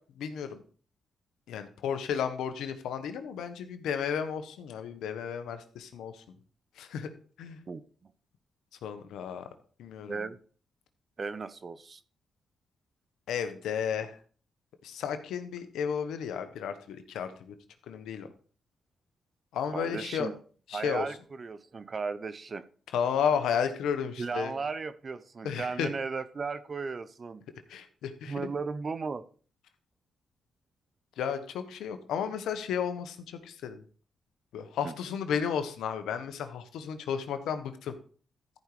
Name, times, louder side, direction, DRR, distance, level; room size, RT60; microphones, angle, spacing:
voice 1, 0.2-0.6 1.5-6.2 6.8-7.1 7.4-7.6 8.8-9.5 9.8-10.2 13.3-14.2 14.8-17.5 17.9-18.3 19.5-20.3 20.7-21.0 22.9-24.5 25.4-25.9 27.7-28.5 31.2-33.8 34.5-37.9, left 7 dB, 85° left, 9 dB, 1.2 m, -33 dB
voice 2, 11.2-12.0 19.7-20.3 20.7-22.6 24.2-27.4 28.3-29.2 34.8-34.9, right 4 dB, 45° right, 14 dB, 0.9 m, -35 dB
14.0 x 5.4 x 4.9 m, 0.42 s
cardioid pair, 65°, 0 cm